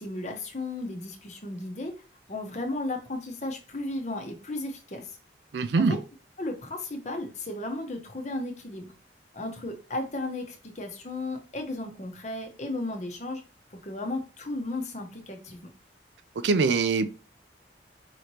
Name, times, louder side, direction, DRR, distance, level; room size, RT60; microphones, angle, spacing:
voice 1, 0.0-1.9 2.3-5.1 5.8-6.0 6.4-8.9 9.3-13.4 13.7-15.6, left 2 dB, 40° left, 0.9 m, -34 dB
voice 2, 5.5-6.0 16.4-17.1, right 4 dB, 75° right, 0.4 m, -23 dB
4.9 x 3.1 x 2.8 m
head